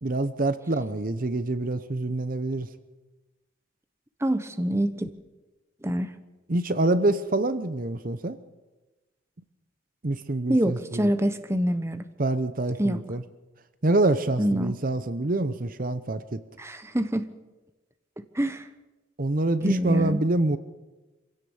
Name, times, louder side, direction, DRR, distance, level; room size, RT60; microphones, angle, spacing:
voice 1, 0.0-2.7 6.5-8.4 10.0-11.1 12.2-13.2 13.8-16.4 19.2-20.6, right 2 dB, 40° right, 12 dB, 0.8 m, -26 dB
voice 2, 4.2-5.1 5.8-6.1 10.5-12.1 12.8-13.0 14.4-14.7 16.6-17.3 18.3-18.7 19.6-20.2, equal, 15° right, 10 dB, 0.9 m, -25 dB
24.5 x 16.5 x 7.1 m, 1.1 s
head